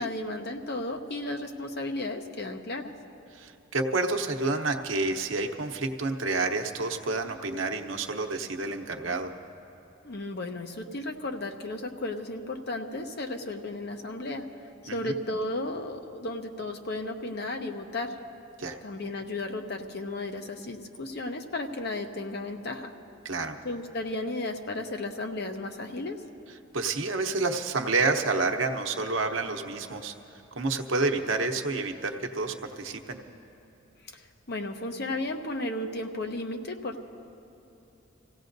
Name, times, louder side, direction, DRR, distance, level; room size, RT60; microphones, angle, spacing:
voice 1, 0.0-2.9 10.0-14.4 14.8-18.2 18.8-22.9 23.6-26.2 34.1-37.0, left 2 dB, 55° left, 4 dB, 0.9 m, -34 dB
voice 2, 3.3-9.3 14.9-15.2 18.6-18.8 23.2-23.6 26.7-30.1 30.5-33.2, right 3 dB, 85° right, 5 dB, 0.8 m, -29 dB
27.0 x 16.0 x 2.6 m, 2.9 s
head